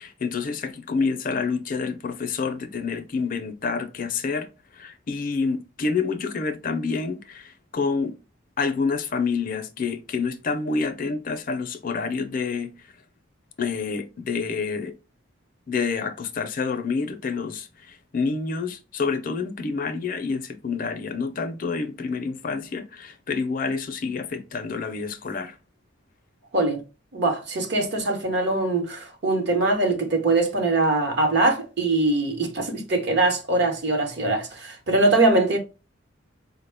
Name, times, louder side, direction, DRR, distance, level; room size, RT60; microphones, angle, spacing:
voice 1, 0.0-4.5 4.7-8.2 8.6-12.7 13.6-14.9 15.7-25.6, left 4 dB, 45° left, 0.5 m, -28 dB
voice 2, 27.1-35.6, right 2 dB, 60° right, 0.9 m, -22 dB
4.4 x 2.1 x 3.3 m
head